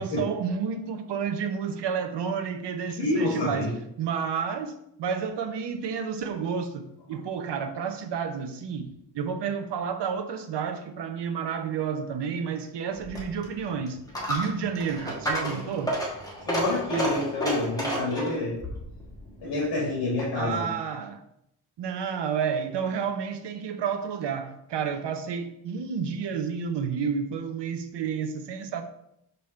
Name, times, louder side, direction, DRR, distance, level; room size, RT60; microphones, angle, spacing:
voice 1, 0.0-6.8 7.1-14.0 14.3-15.9 20.4-21.2 21.8-28.8, right 6 dB, 80° right, 0.8 m, -30 dB
voice 2, 3.0-3.7 16.5-18.6 19.4-20.6, left 2 dB, 70° left, 2.3 m, -28 dB
Coin (dropping), 13.0-20.5, equal, 10° left, 1.3 m, -32 dB
5.8 x 5.5 x 3.2 m
wide cardioid pair, 175°, 41 cm